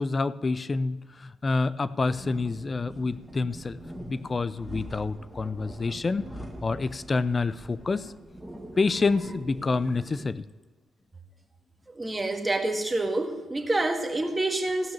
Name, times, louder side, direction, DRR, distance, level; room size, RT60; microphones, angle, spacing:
voice 1, 0.0-3.8 4.1-6.3 6.6-8.1 8.8-10.4, left 3 dB, 30° left, 17 dB, 0.5 m, -28 dB
sound 1, 2.0-10.3, right 1 dB, ahead, 1.7 m, -43 dB
voice 2, 11.9-14.9, right 2 dB, 15° right, 3 dB, 1.7 m, -27 dB
15.5 x 6.0 x 7.2 m, 1.4 s
cardioid pair, 90°, 0 cm